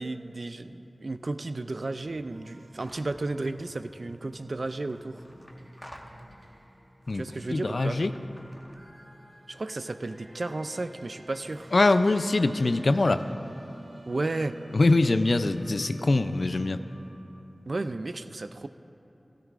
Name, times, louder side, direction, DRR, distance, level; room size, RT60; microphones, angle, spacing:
voice 1, 0.0-5.2 7.1-8.0 9.5-11.7 14.1-14.6 17.7-18.7, right 2 dB, 65° right, 10 dB, 0.4 m, -33 dB
sound 1, 1.9-17.3, right 1 dB, 35° right, 2.5 m, -50 dB
sound 2, 2.8-3.2 4.4-6.6 7.0-9.0, equal, 5° left, 1.0 m, -52 dB
voice 2, 7.5-8.1 11.7-13.3 14.7-16.8, left 2 dB, 70° left, 10 dB, 0.4 m, -23 dB
15.5 x 13.5 x 2.5 m, 2.9 s
wide cardioid pair, 55°, 0 cm